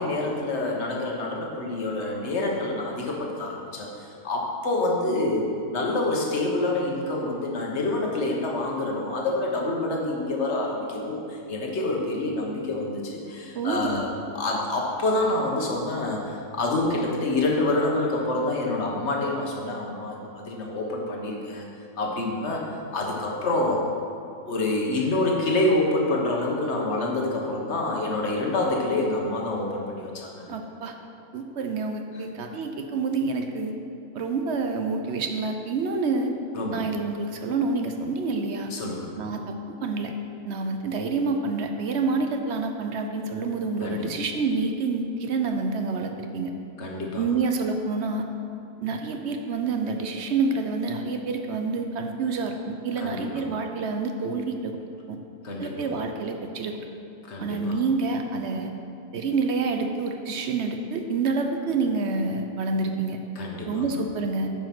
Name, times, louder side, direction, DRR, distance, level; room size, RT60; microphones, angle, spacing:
voice 1, 0.0-21.7 22.0-22.6 22.9-23.8 24.4-30.5 36.5-36.9 38.7-39.1 43.8-44.1 46.8-47.3 53.0-53.5 55.4-55.9 57.3-57.8 63.3-63.8, left 2 dB, 50° left, -1 dB, 1.4 m, -27 dB
voice 2, 13.5-14.0 30.5-30.9 31.3-33.7 34.1-36.3 36.7-38.7 39.2-39.5 39.8-40.1 40.4-46.5 47.2-48.2 48.8-54.7 55.1-55.2 55.6-56.9 57.4-58.7 59.1-63.2 63.7-64.5, right 4 dB, 60° right, 5 dB, 0.8 m, -28 dB
9.0 x 4.9 x 6.0 m, 2.8 s
omnidirectional pair, 1.6 m